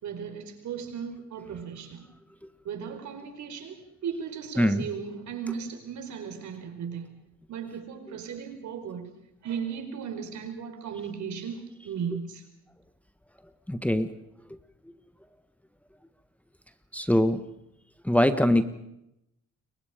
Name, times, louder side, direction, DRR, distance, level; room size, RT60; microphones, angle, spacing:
voice 1, 0.0-2.0 2.6-7.2 7.5-9.1 9.4-12.4, right 7 dB, 70° right, 4.9 m, -36 dB
voice 2, 13.7-14.1 16.9-17.4 18.1-18.6, left 1 dB, 5° left, 1.4 m, -22 dB
29.0 x 23.5 x 5.2 m
cardioid pair, 90°, 30 cm